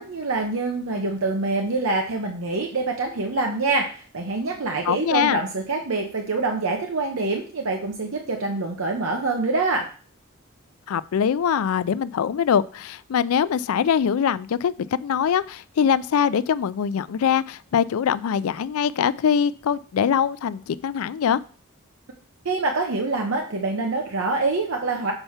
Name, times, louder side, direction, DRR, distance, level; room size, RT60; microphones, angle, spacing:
voice 1, 0.0-9.9 22.4-25.1, right 3 dB, 70° right, 2 dB, 0.9 m, -25 dB
voice 2, 4.9-5.4 10.9-21.4, left 7 dB, 90° left, 17 dB, 0.4 m, -23 dB
6.8 x 4.5 x 5.6 m, 0.40 s
head